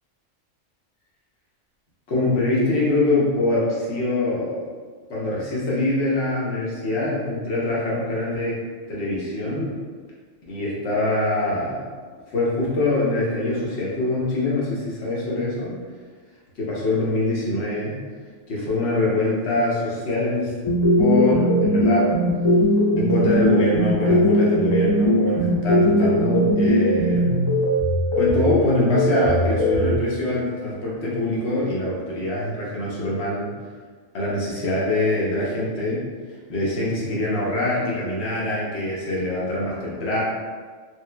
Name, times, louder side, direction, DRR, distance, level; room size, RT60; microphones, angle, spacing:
voice 1, 2.1-4.6 5.1-8.6 8.9-9.8 10.5-11.8 12.3-15.8 16.6-18.0 18.5-20.5 20.9-22.1 23.0-27.3 28.2-33.5 34.1-36.1 36.5-40.2, left 2 dB, 60° left, -6 dB, 1.1 m, -24 dB
sound 1, 20.6-30.0, equal, 35° left, 0.4 m, -19 dB
3.2 x 3.0 x 2.2 m, 1.5 s
omnidirectional pair, 1.4 m